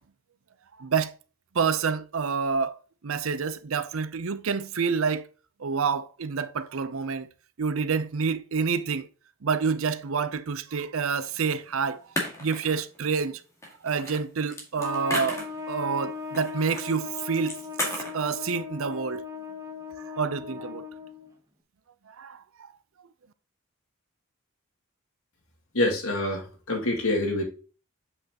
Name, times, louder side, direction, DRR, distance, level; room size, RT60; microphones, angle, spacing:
voice 1, 0.8-1.1 1.5-2.8 3.0-5.3 5.6-7.3 7.6-9.1 9.4-12.0 12.4-13.4 13.8-17.5 18.1-19.2 20.1-20.8 22.2-22.4, right 5 dB, 70° right, 0.6 m, -28 dB
sound 1, 11.5-11.6 12.2-13.0 13.6-15.8 16.3-16.9 17.2-18.2, equal, 15° left, 1.9 m, -33 dB
Trumpet, 14.8-21.3, left 4 dB, 15° right, 1.0 m, -38 dB
voice 2, 25.7-27.4, left 1 dB, 75° left, 2.1 m, -26 dB
7.9 x 5.4 x 2.9 m
head